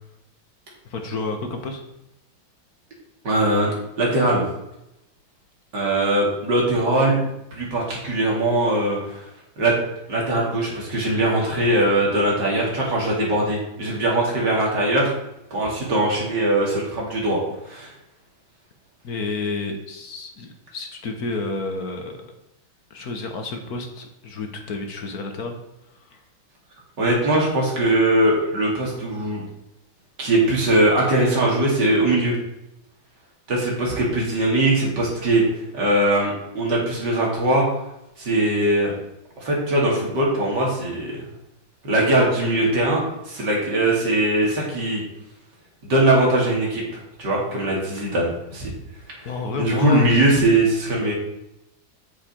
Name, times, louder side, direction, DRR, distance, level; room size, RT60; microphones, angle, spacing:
voice 1, 0.9-1.8 19.0-22.3 22.9-25.6 26.1-26.2 49.2-50.0, left 3 dB, 50° left, 4 dB, 1.6 m, -30 dB
voice 2, 3.2-3.7 4.0-4.4 5.7-7.2 7.5-9.3 9.6-9.7 10.1-15.1 15.5-17.4 17.7-17.9 27.0-29.4 30.2-32.4 33.5-35.4 35.7-37.7 38.2-38.9 39.4-41.2 41.8-45.0 45.8-46.8 47.2-48.7 49.2-49.3 49.6-51.1, right 1 dB, 55° right, -3 dB, 3.4 m, -21 dB
8.6 x 7.5 x 4.5 m, 0.86 s
omnidirectional pair, 2.2 m